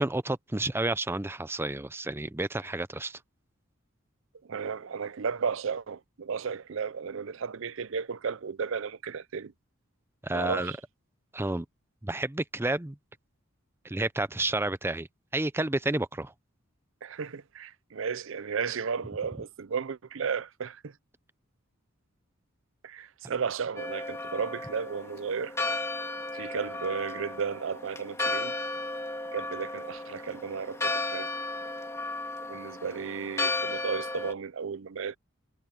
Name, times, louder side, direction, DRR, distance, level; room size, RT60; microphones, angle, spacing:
voice 1, 0.0-3.2 10.2-10.7 11.3-11.7 12.0-13.0 13.8-15.1 15.3-16.3, right 2 dB, 10° right, 0.6 m, -30 dB
voice 2, 4.5-9.5 10.3-10.8 17.0-20.9 22.8-25.6 26.3-28.5 29.3-31.3 32.5-35.2, right 6 dB, 65° right, 0.5 m, -34 dB
Church bell, 23.8-34.3, left 2 dB, 15° left, 2.9 m, -34 dB
head